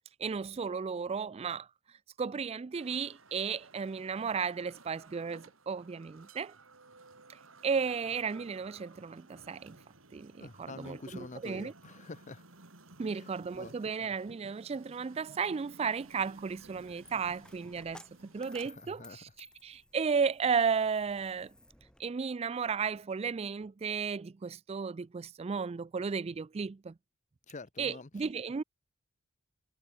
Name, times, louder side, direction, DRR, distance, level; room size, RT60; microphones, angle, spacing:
voice 1, 0.2-1.7 2.2-6.5 7.3-9.8 10.1-11.7 13.0-18.0 18.3-21.5 22.0-26.9 27.8-28.6, right 5 dB, 30° right, 0.3 m, -34 dB
sound 1, 2.7-18.7, right 2 dB, 70° right, 4.0 m, -56 dB
voice 2, 10.4-12.4 13.1-13.3 13.6-13.7 18.6-19.2 27.5-28.1, left 3 dB, 35° left, 0.8 m, -46 dB
Coin (dropping), 15.9-22.0, left 1 dB, 5° left, 7.4 m, -57 dB
head